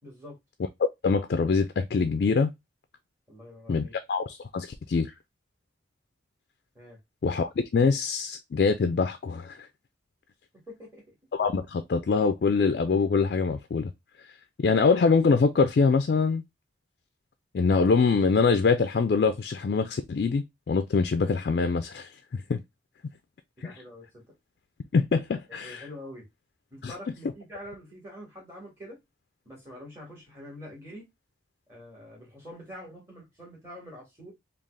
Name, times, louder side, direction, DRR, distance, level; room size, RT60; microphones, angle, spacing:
voice 1, 0.0-0.4 3.3-3.9 6.7-7.0 10.5-11.2 23.6-24.3 25.6-26.3 26.7-29.0 29.5-31.0 31.7-34.3, left 1 dB, 15° right, 1.9 m, -45 dB
voice 2, 1.0-2.5 3.7-5.1 7.2-9.6 11.3-13.9 14.6-16.4 17.5-22.6 23.6-23.7 24.9-25.9 26.8-26.9, left 4 dB, 55° left, 0.3 m, -24 dB
3.7 x 2.4 x 3.2 m
head